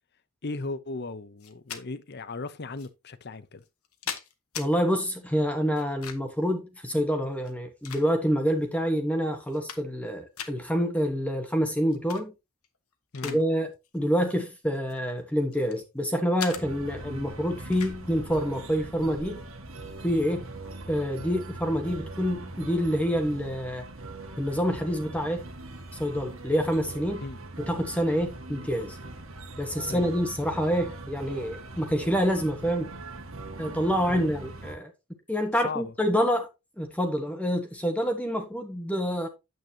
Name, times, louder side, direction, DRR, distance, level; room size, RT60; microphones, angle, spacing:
voice 1, 0.4-3.6 13.1-13.4 27.2-27.4 29.9-30.1 34.1-34.3 35.6-35.9, left 3 dB, 45° left, 0.7 m, -36 dB
sound 1, 1.4-1.8 2.8-2.9 3.6-4.7 5.8-6.4 7.4-8.4 9.0-9.1 9.4-10.1 10.4-10.6 11.9-12.2 12.6-13.4 13.7-14.0 14.7-15.8 16.4-16.6 17.7-18.0, left 8 dB, 75° left, 1.3 m, -39 dB
voice 2, 4.6-12.3 13.2-19.4 20.0-20.5 20.9-23.9 24.4-25.4 25.9-27.2 27.6-29.0 29.6-32.9 33.6-34.9 35.3-36.5 36.8-39.3, equal, 5° left, 1.1 m, -27 dB
sound 2, 16.5-34.7, right 2 dB, 60° right, 1.7 m, -41 dB
9.2 x 8.0 x 2.8 m
head